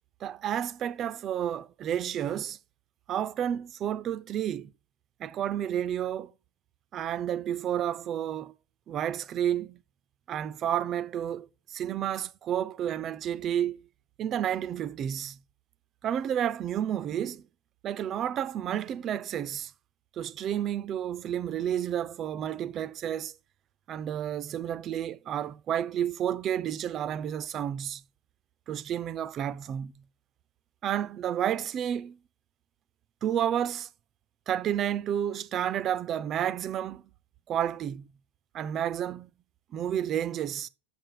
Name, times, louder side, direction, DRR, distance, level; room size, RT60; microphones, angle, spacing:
voice 1, 0.2-2.6 3.1-4.7 5.2-6.3 6.9-8.5 8.9-9.8 10.3-13.9 14.2-15.4 16.0-17.4 17.8-19.7 20.2-23.3 23.9-28.0 28.7-30.0 30.8-32.2 33.2-33.9 34.5-37.0 37.5-38.1 38.5-39.3 39.7-40.7, right 10 dB, 30° right, 0.6 m, -31 dB
7.8 x 6.9 x 5.6 m
figure-of-eight pair, 90°, 0 cm